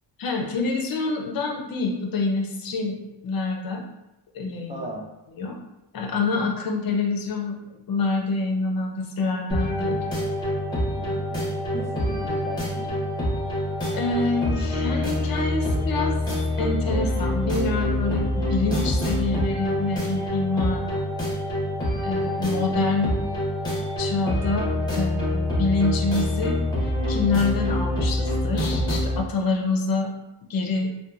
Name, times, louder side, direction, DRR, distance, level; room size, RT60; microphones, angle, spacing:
voice 1, 0.2-3.8 4.3-4.9 5.4-5.6 5.9-10.0 12.2-12.4 13.9-16.2 16.6-21.1 22.0-23.3 24.0-26.6 27.1-30.1 30.5-30.9, left 3 dB, 50° left, 2 dB, 0.5 m, -26 dB
voice 2, 4.7-5.0 11.0-13.0 22.2-23.0, right 2 dB, 20° right, -1 dB, 0.3 m, -38 dB
sound 1, 9.5-29.2, left 1 dB, 10° left, 0.9 m, -26 dB
2.8 x 2.2 x 2.3 m, 0.92 s
wide cardioid pair, 135°, 46 cm